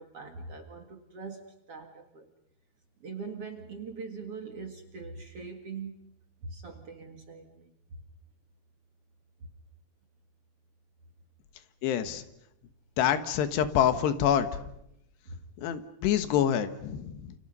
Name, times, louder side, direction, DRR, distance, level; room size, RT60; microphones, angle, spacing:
voice 1, 0.0-2.3 3.0-5.9 6.4-7.7 15.3-15.4, right 4 dB, 45° right, 5 dB, 2.2 m, -42 dB
voice 2, 11.8-12.2 13.0-14.5 15.6-17.3, left 9 dB, 80° left, 10 dB, 3.4 m, -26 dB
29.5 x 28.5 x 5.5 m, 0.80 s
omnidirectional pair, 4.8 m